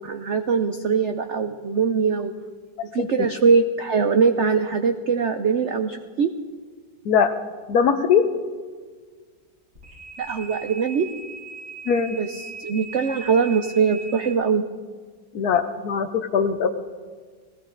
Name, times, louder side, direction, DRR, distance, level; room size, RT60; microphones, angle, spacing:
voice 1, 0.0-2.3 2.9-6.3 10.2-11.1 12.1-14.6, right 5 dB, 75° right, 7 dB, 0.6 m, -22 dB
voice 2, 7.7-8.3 11.9-12.2 15.3-16.7, left 6 dB, 65° left, 9 dB, 1.2 m, -20 dB
sound 1, 9.8-14.3, right 4 dB, 35° right, 5.7 m, -39 dB
20.0 x 16.0 x 3.8 m, 1.6 s
omnidirectional pair, 2.0 m